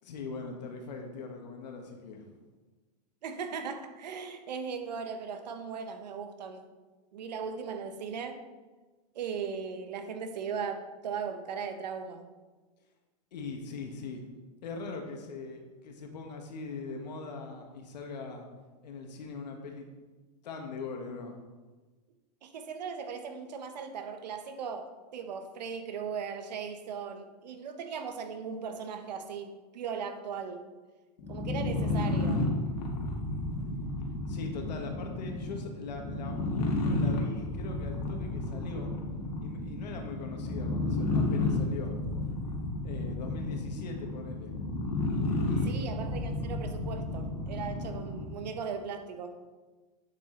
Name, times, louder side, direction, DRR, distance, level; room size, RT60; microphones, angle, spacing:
voice 1, 0.0-2.4 13.3-18.4 18.8-19.9 20.4-21.4 34.3-38.9 39.4-42.0 42.8-44.5 45.5-45.8, left 4 dB, 85° left, 2 dB, 1.5 m, -41 dB
voice 2, 3.2-6.6 7.1-8.4 9.1-12.3 22.4-30.6 31.3-32.4 45.7-49.4, right 6 dB, 85° right, 7 dB, 1.2 m, -38 dB
sound 1, 31.2-48.5, left 2 dB, 60° left, 2.0 m, -32 dB
8.6 x 7.2 x 3.9 m, 1.3 s
supercardioid pair, 140°, 21 cm